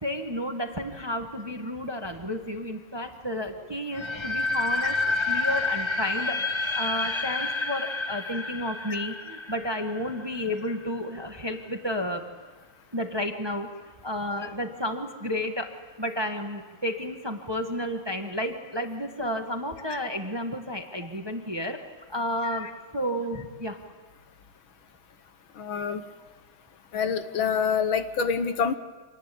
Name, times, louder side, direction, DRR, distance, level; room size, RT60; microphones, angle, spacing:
voice 1, 0.0-12.2 12.9-13.7 14.0-15.7 16.0-21.8 22.1-23.8, left 1 dB, 15° right, 5 dB, 1.4 m, -32 dB
sound 1, 3.9-10.8, left 3 dB, 15° left, 1.0 m, -29 dB
voice 2, 25.6-26.0 26.9-28.7, left 6 dB, 70° left, 10 dB, 1.9 m, -26 dB
26.5 x 19.5 x 8.6 m, 1.4 s
omnidirectional pair, 2.4 m